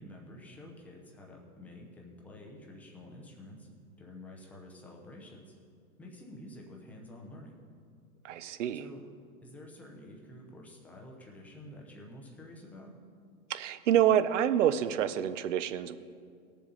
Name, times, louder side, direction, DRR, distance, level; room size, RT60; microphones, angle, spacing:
voice 1, 0.0-3.7 4.0-5.6 6.0-7.5 8.7-9.0 9.4-12.9, left 1 dB, 5° left, -1 dB, 0.5 m, -49 dB
voice 2, 8.2-8.8 13.5-16.0, right 10 dB, 55° right, 13 dB, 0.6 m, -27 dB
18.0 x 6.9 x 3.8 m, 2.2 s
hypercardioid pair, 145°, 45 cm